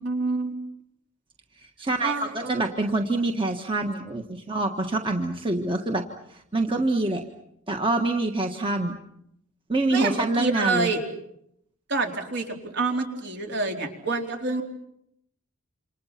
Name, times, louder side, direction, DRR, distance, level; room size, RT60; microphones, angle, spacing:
voice 1, 0.0-0.5 2.0-2.6 9.9-11.0 11.9-14.6, right 3 dB, 55° right, 2 dB, 4.0 m, -27 dB
voice 2, 1.8-6.0 6.3-7.2 7.7-9.0 9.7-10.9, right 2 dB, 25° right, 3 dB, 1.5 m, -26 dB
28.5 x 27.0 x 5.9 m, 0.76 s
head